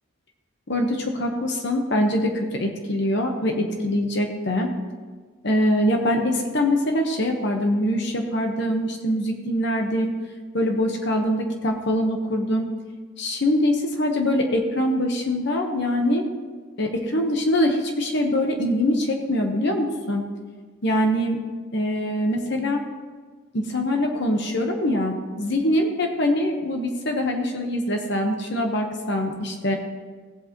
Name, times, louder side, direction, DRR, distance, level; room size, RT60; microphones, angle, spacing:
voice 1, 0.7-4.7 5.4-10.1 10.5-12.7 13.2-16.3 16.8-20.2 20.8-21.4 21.7-22.8 23.5-29.8, left 1 dB, 55° left, 3 dB, 1.1 m, -23 dB
16.5 x 8.0 x 3.0 m, 1.4 s
head